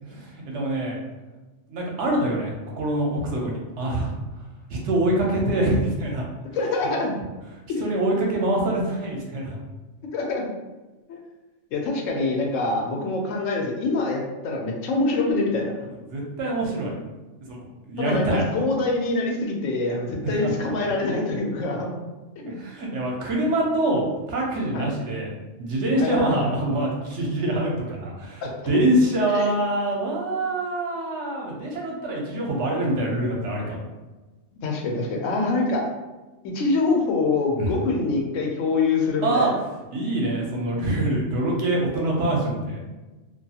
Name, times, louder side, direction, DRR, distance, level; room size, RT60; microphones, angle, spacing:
voice 1, 0.0-1.0 1.7-4.1 4.7-6.2 7.8-9.6 16.1-16.9 17.5-18.4 20.2-20.5 22.4-25.3 25.6-33.8 37.6-37.8 39.2-39.5 39.9-42.8, right 1 dB, 70° right, -1 dB, 0.9 m, -25 dB
voice 2, 6.5-7.1 10.1-10.5 11.1-11.2 11.7-15.8 18.0-21.9 24.7-24.9 25.9-26.6 28.4-28.8 29.3-29.4 34.6-35.9 36.4-39.5, left 3 dB, 80° left, 0 dB, 1.0 m, -25 dB
2.5 x 2.3 x 2.7 m, 1.2 s
omnidirectional pair, 1.3 m